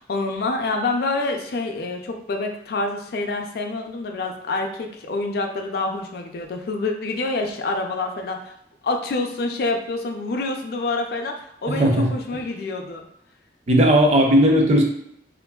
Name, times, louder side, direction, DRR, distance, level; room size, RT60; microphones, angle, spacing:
voice 1, 0.0-8.5 8.8-13.0, left 3 dB, 60° left, 4 dB, 0.4 m, -27 dB
voice 2, 11.7-12.1 13.7-14.8, equal, 40° right, 1 dB, 0.5 m, -16 dB
2.9 x 2.5 x 2.2 m, 0.71 s
head